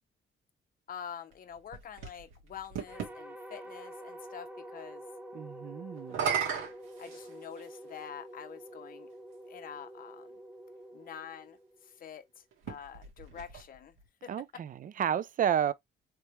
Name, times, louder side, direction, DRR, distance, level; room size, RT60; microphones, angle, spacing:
voice 1, 0.9-5.0 7.0-9.1 9.5-10.4 10.9-11.6 11.8-13.9 14.2-14.6, left 8 dB, 45° left, 0.6 m, -46 dB
sound 1, 1.3-3.2 6.0-7.8 8.7-8.8 12.5-14.1, right 7 dB, 90° right, 1.5 m, -36 dB
sound 2, 2.9-12.2, right 1 dB, 10° right, 1.0 m, -48 dB
voice 2, 5.3-6.3 14.3-15.7, right 9 dB, 45° right, 0.4 m, -31 dB
3.4 x 3.2 x 2.9 m
cardioid pair, 90°, 20 cm